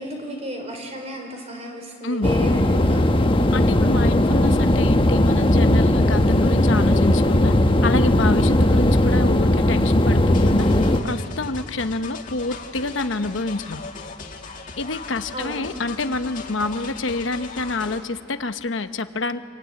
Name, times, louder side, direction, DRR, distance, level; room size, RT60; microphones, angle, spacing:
voice 1, 0.0-3.2 15.3-15.6, equal, 35° right, 3 dB, 4.5 m, -33 dB
sound 1, 2.2-11.0, left 1 dB, 25° left, 1.1 m, -18 dB
voice 2, 3.5-7.6 7.8-13.8 14.8-19.4, left 3 dB, 75° left, 9 dB, 1.0 m, -27 dB
sound 2, 10.3-18.0, left 4 dB, 40° left, 2.1 m, -38 dB
27.5 x 23.0 x 9.5 m, 2.3 s
head